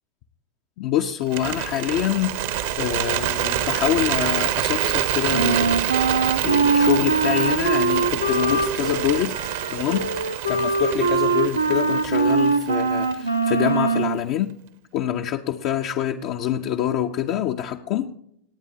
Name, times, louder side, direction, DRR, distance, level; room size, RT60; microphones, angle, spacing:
voice 1, 0.8-2.4 2.8-5.9 6.4-9.4 9.7-14.5 14.9-18.2, left 11 dB, 45° left, 0.6 m, -25 dB
Bird, 1.2-13.4, right 11 dB, 55° right, 1.1 m, -27 dB
Wind instrument woodwind instrument, 5.3-14.2, right 4 dB, 85° right, 1.0 m, -22 dB
26.5 x 9.1 x 2.7 m
figure-of-eight pair, 90°, 0 cm